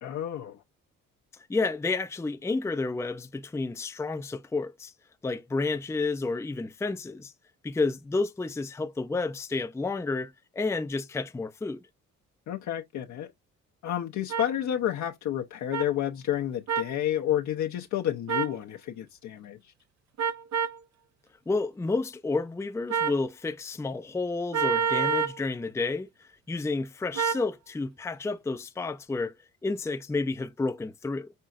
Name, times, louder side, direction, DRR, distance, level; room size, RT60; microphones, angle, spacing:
voice 1, 0.0-0.6 12.5-13.3 13.8-19.6, left 11 dB, 70° left, 0.8 m, -30 dB
voice 2, 1.5-4.9 5.2-7.3 7.6-11.8 21.5-29.3 29.6-31.3, left 3 dB, 10° left, 0.5 m, -30 dB
sound 1, 14.3-14.5 15.7-15.9 16.7-16.9 18.3-18.6 20.2-20.8 22.9-23.2 24.5-25.4 27.2-27.5, right 6 dB, 60° right, 0.8 m, -27 dB
5.6 x 3.7 x 2.4 m
cardioid pair, 90°, 30 cm